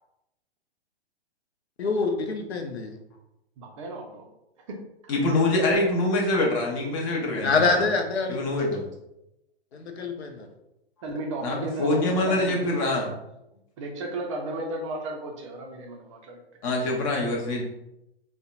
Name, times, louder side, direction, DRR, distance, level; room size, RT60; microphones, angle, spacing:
voice 1, 1.8-3.0 7.4-8.4 9.7-10.5, left 4 dB, 85° left, 5 dB, 0.5 m, -25 dB
voice 2, 3.6-4.3 4.7-4.8 11.0-12.8 13.8-16.4, right 2 dB, 30° right, 1 dB, 0.4 m, -34 dB
voice 3, 5.1-7.8 8.3-8.8 11.4-13.1 16.6-17.6, left 2 dB, 35° left, -1 dB, 0.6 m, -25 dB
2.6 x 2.1 x 2.3 m, 0.86 s
hypercardioid pair, 120°, 31 cm